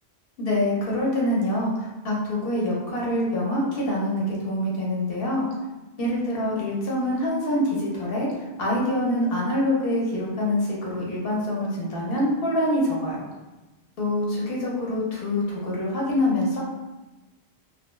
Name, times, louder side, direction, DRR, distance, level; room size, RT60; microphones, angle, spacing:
voice 1, 0.4-5.5 6.0-8.3 8.6-13.2 14.0-16.6, left 1 dB, 60° left, -4 dB, 0.9 m, -25 dB
2.3 x 2.2 x 3.0 m, 1.1 s
omnidirectional pair, 1.1 m